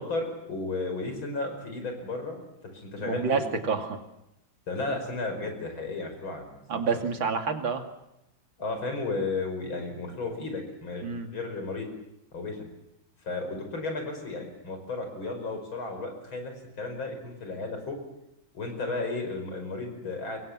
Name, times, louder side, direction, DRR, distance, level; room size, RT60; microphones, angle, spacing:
voice 1, 0.0-2.4 2.7-3.4 4.7-6.8 8.6-11.9 12.3-12.7 13.2-18.0 18.5-20.4, left 3 dB, 90° left, 5 dB, 6.2 m, -34 dB
voice 2, 3.0-4.0 6.7-7.8 11.0-11.3, right 5 dB, 75° right, 5 dB, 3.2 m, -28 dB
26.0 x 22.5 x 7.4 m, 0.85 s
omnidirectional pair, 2.1 m